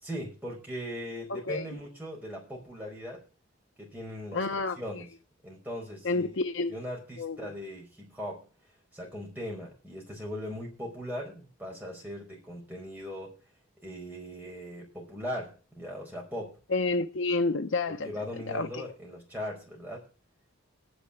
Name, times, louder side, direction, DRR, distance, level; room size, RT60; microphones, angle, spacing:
voice 1, 0.0-3.2 3.8-4.4 4.8-5.1 5.4-6.3 6.7-8.4 8.9-13.3 13.8-16.6 17.9-20.0, equal, 10° right, 4.8 m, -39 dB
voice 2, 1.3-1.7 4.3-4.8 6.0-6.8 7.2-7.5 16.7-18.1 18.5-18.9, left 3 dB, 60° left, 0.7 m, -29 dB
10.0 x 6.8 x 8.4 m
head